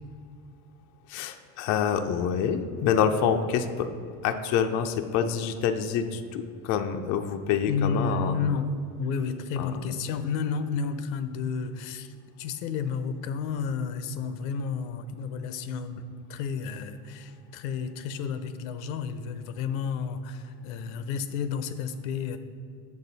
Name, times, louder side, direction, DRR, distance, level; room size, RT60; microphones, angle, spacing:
voice 1, 1.1-3.9 4.2-8.4 9.6-9.8, left 7 dB, 45° left, 6 dB, 0.4 m, -27 dB
voice 2, 7.7-8.7 9.0-22.4, left 5 dB, 85° left, 11 dB, 0.7 m, -31 dB
7.4 x 7.2 x 4.0 m, 2.4 s
cardioid pair, 155°, 39 cm